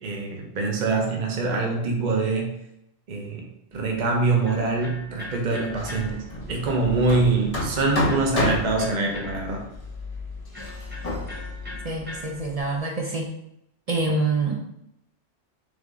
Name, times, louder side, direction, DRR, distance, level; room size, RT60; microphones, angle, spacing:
voice 1, 0.0-2.5 3.1-3.5 3.7-9.7, right 3 dB, 45° right, 0 dB, 0.8 m, -24 dB
Electric guitar, 3.7-12.8, left 1 dB, 10° right, 0.7 m, -43 dB
Hammer, 5.7-12.6, left 2 dB, 35° left, 1.0 m, -31 dB
voice 2, 11.8-13.3 13.9-14.7, right 3 dB, 60° right, 0 dB, 0.4 m, -26 dB
3.4 x 3.2 x 3.7 m, 0.81 s
omnidirectional pair, 1.2 m